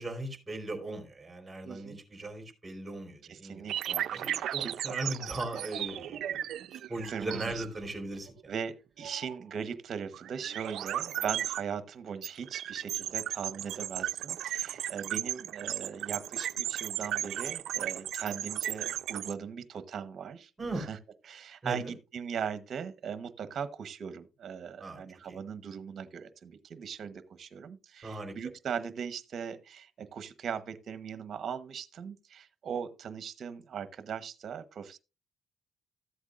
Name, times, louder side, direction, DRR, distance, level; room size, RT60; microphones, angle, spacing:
voice 1, 0.0-3.7 4.1-8.5 20.6-20.9 21.6-21.9 24.8-25.4 28.0-28.4, right 2 dB, 20° right, 3.5 m, -39 dB
voice 2, 1.6-2.0 3.3-4.7 7.1-7.6 8.5-20.5 20.8-21.0 21.2-35.0, right 7 dB, 60° right, 1.0 m, -39 dB
sound 1, 3.7-7.8 8.3-8.4 9.0-9.4 10.1-11.6 12.2-19.3, right 11 dB, 75° right, 0.5 m, -35 dB
14.0 x 8.1 x 2.5 m
cardioid pair, 90°, 0 cm